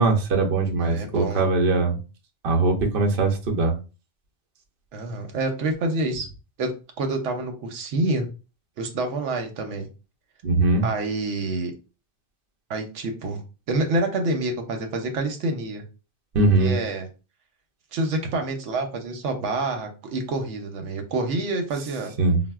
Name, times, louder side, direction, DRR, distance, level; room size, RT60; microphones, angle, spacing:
voice 1, 0.0-2.0 2.4-3.7 10.4-10.8 16.3-16.7 22.2-22.4, right 3 dB, 55° right, 1 dB, 0.8 m, -21 dB
voice 2, 0.8-1.5 4.9-6.3 6.6-8.3 8.8-9.9 10.8-11.7 12.7-13.4 13.7-15.8 16.6-17.1 17.9-22.1, right 2 dB, 85° right, 5 dB, 0.9 m, -27 dB
4.1 x 2.0 x 2.3 m, 0.33 s
omnidirectional pair, 1.2 m